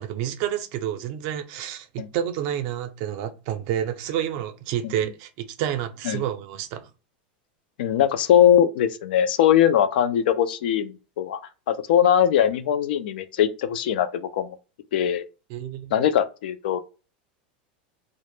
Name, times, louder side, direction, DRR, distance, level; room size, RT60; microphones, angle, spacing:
voice 1, 0.0-5.3 5.6-6.9 15.5-15.9, right 10 dB, 55° right, 0.5 m, -29 dB
voice 2, 7.8-11.4 11.7-14.6 14.9-15.2 15.9-16.8, left 10 dB, 75° left, 0.3 m, -21 dB
2.1 x 2.0 x 3.0 m
supercardioid pair, 125°, 5 cm